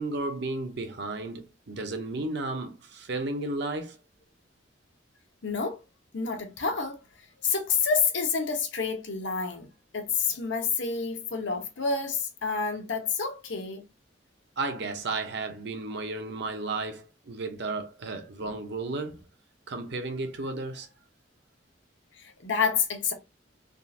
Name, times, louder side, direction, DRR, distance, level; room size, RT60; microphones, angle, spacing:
voice 1, 0.0-4.0 14.6-19.2 19.7-20.9, right 2 dB, 65° right, 0.7 m, -33 dB
voice 2, 5.4-5.8 6.1-7.0 7.4-9.7 9.9-13.8 22.2-23.1, left 5 dB, 70° left, 0.9 m, -28 dB
3.6 x 2.7 x 2.4 m
head